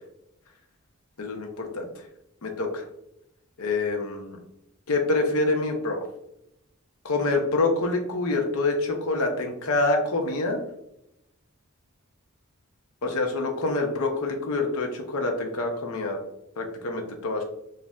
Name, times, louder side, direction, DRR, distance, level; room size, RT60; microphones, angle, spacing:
voice 1, 1.2-1.9 2.4-2.8 3.6-4.4 4.9-6.0 7.0-10.6 13.0-16.2 16.6-17.4, left 2 dB, 90° left, 3 dB, 0.7 m, -26 dB
4.2 x 2.6 x 2.3 m, 0.80 s
head